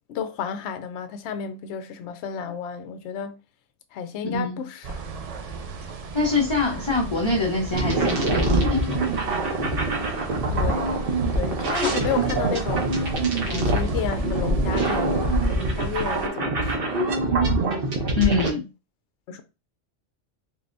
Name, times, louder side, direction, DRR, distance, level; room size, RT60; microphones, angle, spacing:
voice 1, 0.1-3.4 3.9-5.1 10.5-11.0 11.3-17.1 19.3-19.4, left 7 dB, 75° left, 0.8 m, -32 dB
voice 2, 4.2-4.6 6.1-9.1 18.2-18.6, left 3 dB, 25° left, 0.8 m, -24 dB
sound 1, 4.8-16.3, right 4 dB, 70° right, 0.3 m, -35 dB
sound 2, 7.7-18.5, right 2 dB, 55° right, 1.0 m, -24 dB
3.6 x 3.3 x 2.6 m
omnidirectional pair, 1.2 m